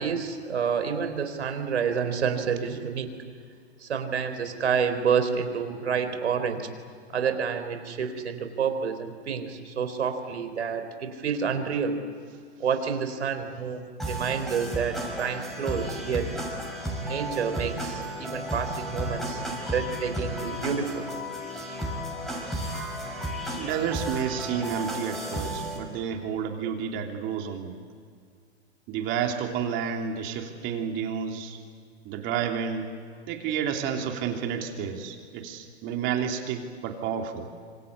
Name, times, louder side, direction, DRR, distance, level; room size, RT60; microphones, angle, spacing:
voice 1, 0.0-3.1 3.8-6.7 7.1-12.0 12.6-16.3 17.0-19.4 19.7-21.1, right 6 dB, 85° right, 8 dB, 3.9 m, -29 dB
sound 1, 14.0-25.8, right 1 dB, ahead, 6.5 m, -33 dB
voice 2, 23.6-27.8 28.9-31.6 32.0-32.9 33.3-37.5, right 7 dB, 35° right, 3 dB, 3.1 m, -30 dB
26.5 x 25.5 x 8.6 m, 2.1 s
hypercardioid pair, 130°, 33 cm